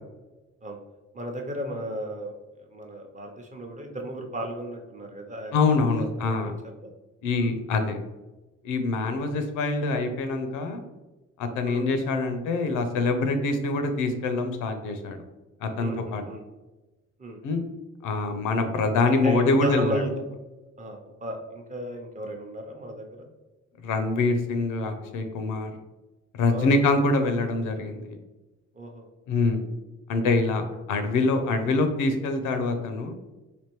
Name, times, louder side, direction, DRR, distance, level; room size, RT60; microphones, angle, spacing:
voice 1, 1.1-2.3 2.6-6.5 6.8-6.9 7.3-7.5 11.6-11.9 15.8-16.4 17.2-17.4 19.1-20.1 20.8-23.3 26.5-26.7 28.8-29.1 31.5-31.7, right 1 dB, 25° right, 2 dB, 0.6 m, -34 dB
voice 2, 5.5-6.5 7.2-8.0 8.6-10.8 11.4-15.2 15.6-16.2 17.4-17.6 18.0-20.0 23.8-25.7 26.4-28.2 29.3-29.6 30.1-30.6 30.9-33.1, left 3 dB, 90° left, 7 dB, 0.6 m, -25 dB
3.4 x 2.6 x 2.9 m, 1.1 s
cardioid pair, 90°, 30 cm